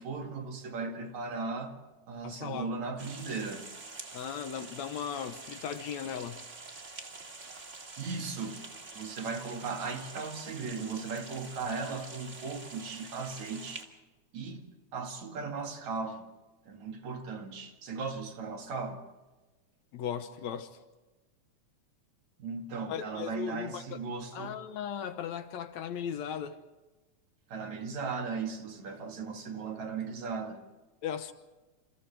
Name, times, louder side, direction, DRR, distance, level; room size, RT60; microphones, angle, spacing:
voice 1, 0.0-1.8 2.1-3.7 7.4-7.5 8.0-8.6 8.9-13.8 14.3-14.7 14.9-16.3 16.7-19.0 22.4-24.5 27.5-30.7, right 4 dB, 65° right, 3.4 m, -37 dB
voice 2, 2.2-2.8 4.1-6.5 19.9-20.8 22.9-24.0 24.3-26.6 31.0-31.3, left 8 dB, 70° left, 2.2 m, -37 dB
sound 1, 3.0-13.8, right 3 dB, 25° right, 2.0 m, -46 dB
29.0 x 29.0 x 3.5 m
omnidirectional pair, 3.5 m